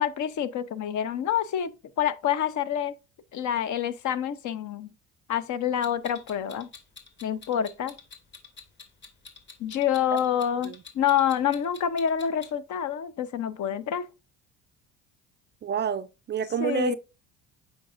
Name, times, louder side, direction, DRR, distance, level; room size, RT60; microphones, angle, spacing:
voice 1, 0.0-1.7 2.0-2.9 3.3-4.9 5.3-6.7 7.2-7.9 9.6-14.1 16.6-17.0, left 9 dB, 50° left, 0.8 m, -27 dB
Clock, 5.8-12.5, left 5 dB, 30° left, 1.9 m, -47 dB
voice 2, 15.6-16.9, right 8 dB, 30° right, 0.4 m, -29 dB
7.5 x 5.2 x 2.5 m
hypercardioid pair, 70°, 37 cm